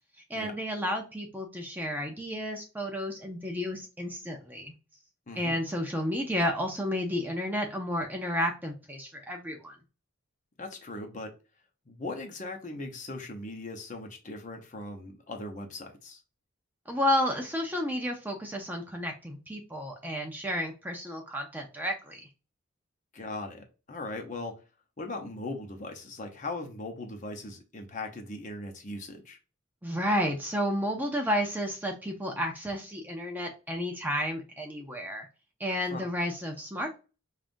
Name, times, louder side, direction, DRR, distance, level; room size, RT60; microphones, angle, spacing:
voice 1, 0.3-4.7 5.4-9.7 16.9-22.2 29.8-35.3 35.6-37.0, equal, 10° right, 2 dB, 0.5 m, -31 dB
voice 2, 5.3-5.6 10.6-11.3 11.9-16.2 23.1-24.5 25.0-29.4 35.9-36.0, left 2 dB, 35° left, 3 dB, 0.8 m, -39 dB
5.3 x 2.5 x 2.5 m, 0.32 s
head